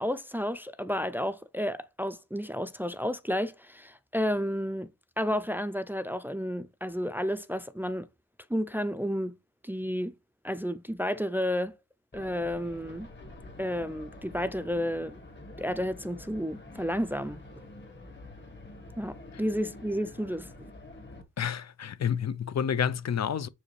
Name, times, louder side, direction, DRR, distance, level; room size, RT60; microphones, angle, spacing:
voice 1, 0.0-4.9 5.2-8.1 8.5-9.4 9.6-10.1 10.4-11.8 12.1-13.1 13.6-15.2 15.6-17.4 19.0-20.7, equal, 5° right, 0.4 m, -31 dB
sound 1, 12.1-21.2, left 2 dB, 40° left, 1.5 m, -47 dB
voice 2, 21.4-23.5, left 8 dB, 65° left, 0.5 m, -29 dB
6.9 x 4.9 x 3.2 m
wide cardioid pair, 105°, 29 cm